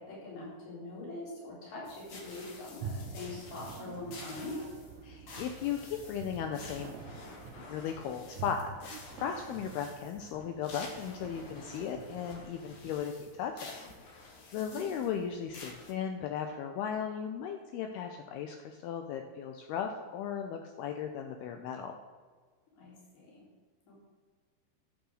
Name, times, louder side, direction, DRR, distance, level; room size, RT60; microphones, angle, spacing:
voice 1, 0.0-4.6 14.6-15.1 22.7-23.4 23.9-24.0, left 2 dB, 40° left, -5 dB, 4.6 m, -43 dB
sound 1, 1.9-15.9, left 3 dB, 65° left, 2.1 m, -50 dB
sound 2, 2.8-12.9, right 5 dB, 90° right, 3.0 m, -47 dB
voice 2, 5.0-7.0 7.7-8.7 9.1-13.7 14.1-14.2 14.5-22.0, left 8 dB, 85° left, 5 dB, 2.3 m, -36 dB
11.0 x 6.6 x 6.4 m, 1.5 s
omnidirectional pair, 5.3 m